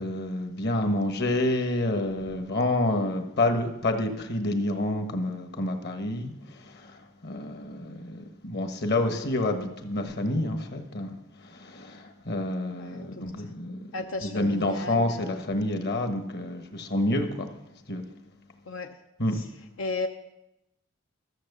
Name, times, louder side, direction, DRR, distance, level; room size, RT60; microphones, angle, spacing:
voice 1, 0.0-17.5 17.9-18.1 19.2-19.4, left 1 dB, 55° left, 1.3 m, -28 dB
voice 2, 12.8-13.5 13.9-15.4 18.7-19.0 19.3-19.4 19.8-20.1, left 3 dB, 90° left, 0.7 m, -35 dB
13.0 x 7.3 x 6.8 m
head